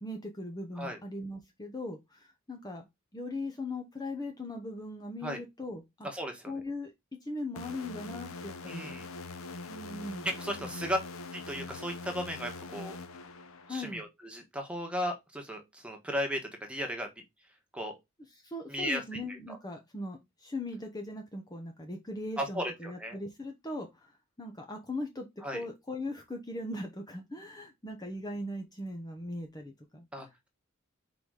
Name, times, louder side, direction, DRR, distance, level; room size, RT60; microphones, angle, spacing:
voice 1, 0.0-2.9 3.1-6.1 6.5-6.9 7.2-8.9 9.7-10.3 10.6-10.9 13.7-14.0 18.3-25.3 25.5-30.3, left 1 dB, 20° left, 0.9 m, -39 dB
voice 2, 6.0-6.6 8.7-9.1 10.2-11.0 11.3-13.0 13.7-17.1 17.7-17.9 18.7-19.6 22.4-23.2 25.4-25.6 30.1-30.5, equal, 5° right, 1.5 m, -35 dB
sound 1, 7.6-14.0, left 3 dB, 80° left, 0.9 m, -43 dB
5.1 x 4.0 x 4.8 m
head